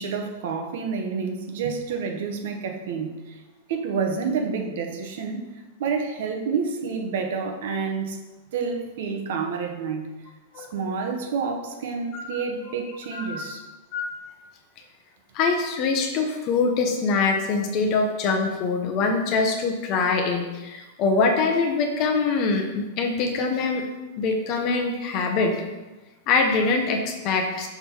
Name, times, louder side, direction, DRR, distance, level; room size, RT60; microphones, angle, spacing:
voice 1, 0.0-3.4 3.7-5.4 5.8-8.2 8.5-10.1 10.6-13.6, right 5 dB, 55° right, 4 dB, 1.1 m, -29 dB
voice 2, 13.1-13.5 13.9-14.1 15.3-23.8 24.2-25.5 26.3-27.7, left 4 dB, 30° left, 4 dB, 0.8 m, -24 dB
5.9 x 5.5 x 4.4 m, 1.1 s
supercardioid pair, 170°, 0 cm